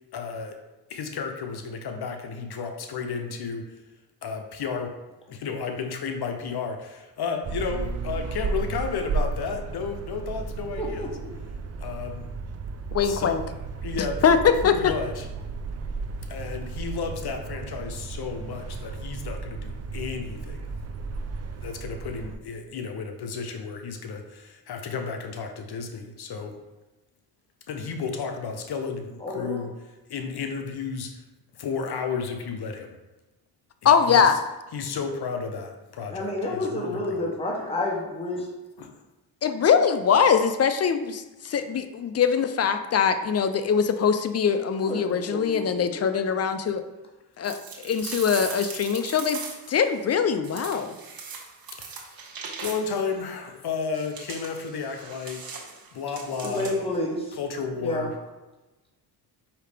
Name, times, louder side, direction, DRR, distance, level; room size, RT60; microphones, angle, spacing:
voice 1, 0.1-0.5 0.9-3.6 4.2-4.9 5.3-11.1 11.8-12.3 12.9-13.4 13.8-15.3 16.3-20.7 21.6-26.6 27.7-29.7 30.1-31.1 31.6-32.9 33.8-34.4 34.7-37.2 38.8-38.9 51.7-52.0 52.6-55.4 55.9-56.7 57.3-58.1, left 5 dB, 65° left, 5 dB, 0.7 m, -32 dB
sound 1, 7.4-22.4, right 4 dB, 40° right, 0.4 m, -34 dB
voice 2, 10.8-11.1 29.2-29.6 36.1-38.5 44.8-45.9 56.4-57.4 57.8-58.1, left 1 dB, 15° left, -2 dB, 1.0 m, -30 dB
voice 3, 12.9-13.4 14.2-14.9 33.8-34.4 39.4-46.8 47.4-49.4 49.7-51.0, left 7 dB, 40° left, 9 dB, 0.4 m, -22 dB
sound 2, 47.4-49.8 50.4-53.1 53.9-57.0, right 5 dB, 60° right, 0.9 m, -39 dB
4.8 x 2.9 x 3.3 m, 1.1 s
cardioid pair, 55°, 41 cm